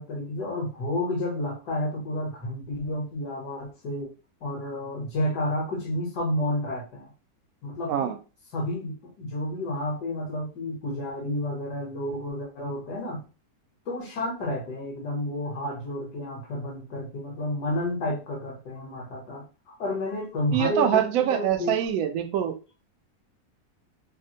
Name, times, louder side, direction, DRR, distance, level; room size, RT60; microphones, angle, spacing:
voice 1, 0.0-4.1 4.4-7.1 7.6-8.1 8.5-13.2 13.8-21.8, left 1 dB, 70° left, -1 dB, 1.7 m, -31 dB
voice 2, 20.5-22.5, right 9 dB, 70° right, 6 dB, 0.9 m, -24 dB
3.4 x 2.1 x 2.7 m, 0.32 s
omnidirectional pair, 1.8 m